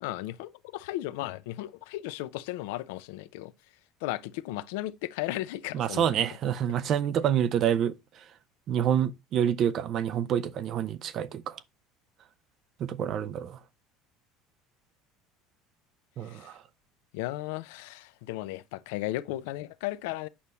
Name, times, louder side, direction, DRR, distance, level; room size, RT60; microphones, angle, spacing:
voice 1, 0.0-3.5 4.0-6.2 16.3-16.5 17.1-20.3, left 16 dB, 80° left, 0.6 m, -35 dB
voice 2, 5.7-7.9 8.7-11.5 12.8-13.6 16.2-16.5, right 9 dB, 50° right, 0.7 m, -27 dB
8.6 x 5.5 x 3.1 m
supercardioid pair, 100°, 0 cm